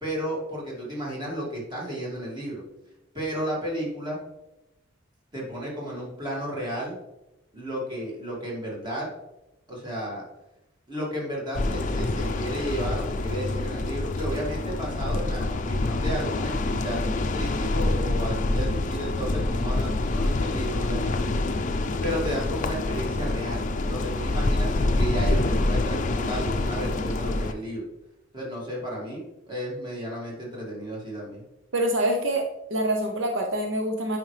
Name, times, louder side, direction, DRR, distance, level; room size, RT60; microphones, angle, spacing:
voice 1, 0.0-2.6 3.1-4.2 5.3-7.0 7.5-9.1 9.7-10.2 10.9-21.2 22.0-27.9 28.3-31.4, equal, 25° right, -4 dB, 2.3 m, -33 dB
sound 1, 11.5-27.5, left 2 dB, 40° left, 0.5 m, -26 dB
voice 2, 31.7-32.4 32.7-34.2, right 1 dB, 70° right, 3 dB, 0.8 m, -25 dB
9.2 x 5.1 x 3.3 m, 0.94 s
head